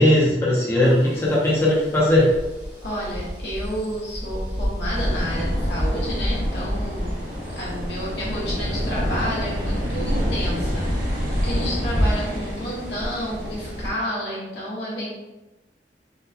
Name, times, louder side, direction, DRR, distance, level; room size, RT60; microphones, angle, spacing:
voice 1, 0.0-2.3, left 1 dB, 15° left, -7 dB, 0.5 m, -18 dB
sound 1, 0.8-13.9, equal, 20° right, 0.9 m, -30 dB
voice 2, 2.8-7.1 7.5-15.1, equal, 65° left, -6 dB, 1.2 m, -30 dB
sound 2, 4.9-13.9, equal, 50° right, 1.1 m, -28 dB
3.7 x 2.1 x 2.7 m, 1.0 s
head